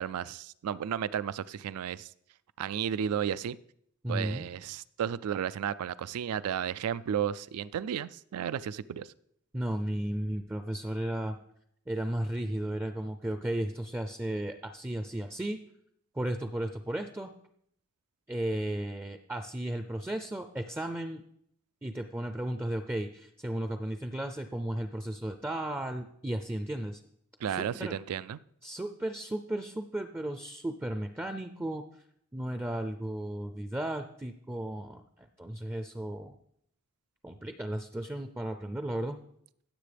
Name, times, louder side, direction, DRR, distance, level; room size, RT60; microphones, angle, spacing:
voice 1, 0.0-2.1 2.6-3.6 4.1-9.1 27.4-28.4, right 8 dB, 80° right, 17 dB, 0.3 m, -33 dB
voice 2, 4.0-4.5 9.5-11.4 11.9-15.6 16.1-17.3 18.3-21.2 21.8-27.0 27.5-28.0 28.6-31.8 32.3-36.4 37.2-39.2, right 1 dB, 10° right, 8 dB, 0.4 m, -34 dB
16.0 x 7.5 x 3.4 m, 0.72 s
head